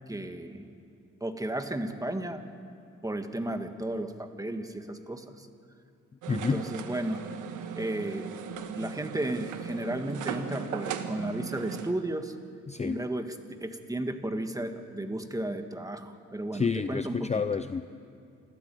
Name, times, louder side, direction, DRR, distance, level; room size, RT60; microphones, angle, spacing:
voice 1, 0.1-0.7 1.2-2.4 3.0-5.5 6.3-7.2 7.7-12.3 12.8-17.4, right 1 dB, 10° right, 7 dB, 1.7 m, -34 dB
sound 1, 6.2-11.9, right 8 dB, 85° right, 1.5 m, -38 dB
voice 2, 6.3-6.6 12.7-13.0 16.5-17.9, left 5 dB, 20° left, 11 dB, 0.6 m, -29 dB
28.0 x 13.0 x 9.2 m, 2.5 s
cardioid pair, 90°, 30 cm